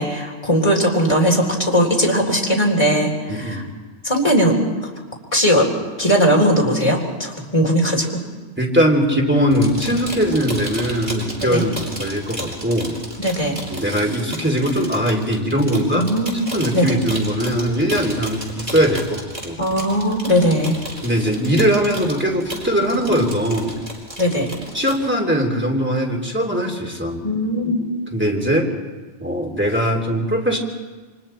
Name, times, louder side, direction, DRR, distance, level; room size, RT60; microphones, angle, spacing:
voice 1, 0.0-3.6 4.0-4.6 4.8-4.9 5.3-5.7 6.0-8.2 11.4-11.7 13.2-13.6 15.9-16.3 16.7-17.0 19.6-20.8 22.9-23.0 24.2-24.5 27.2-27.8, equal, 30° left, 0 dB, 3.8 m, -19 dB
voice 2, 3.3-3.6 8.6-13.0 13.7-16.1 16.5-19.6 21.0-23.8 24.7-27.2 28.1-28.7 29.2-30.6, equal, 10° right, 0 dB, 2.9 m, -20 dB
sound 1, 9.5-25.0, right 1 dB, 35° right, 4.5 m, -34 dB
29.0 x 24.5 x 4.4 m, 1.3 s
omnidirectional pair, 1.1 m